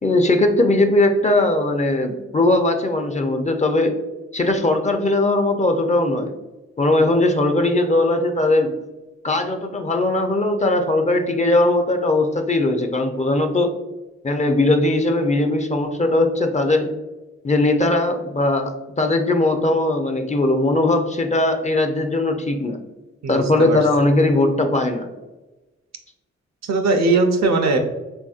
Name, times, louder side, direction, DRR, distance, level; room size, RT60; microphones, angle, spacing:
voice 1, 0.0-3.9 4.3-6.3 6.8-8.8 9.2-13.8 14.2-16.9 17.4-22.8 23.3-25.1, left 2 dB, 25° left, 5 dB, 0.4 m, -19 dB
voice 2, 23.2-23.8 26.6-27.8, right 3 dB, 65° right, 5 dB, 0.6 m, -19 dB
3.4 x 2.6 x 2.4 m, 1.1 s
cardioid pair, 50°, 29 cm